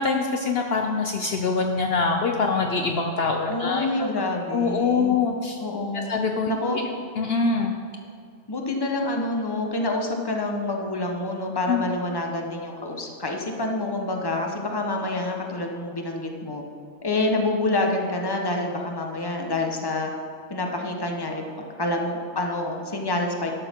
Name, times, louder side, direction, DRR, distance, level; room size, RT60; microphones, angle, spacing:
voice 1, 0.0-4.1 4.5-5.6 6.1-6.5 7.2-7.7 11.7-11.8, left 4 dB, 60° left, 3 dB, 0.9 m, -24 dB
voice 2, 3.5-5.2 5.6-6.2 6.5-6.8 8.5-16.6 17.0-20.1 20.5-21.4 21.8-23.5, left 2 dB, 20° left, 2 dB, 1.1 m, -27 dB
12.5 x 11.5 x 3.7 m, 2.3 s
omnidirectional pair, 1.3 m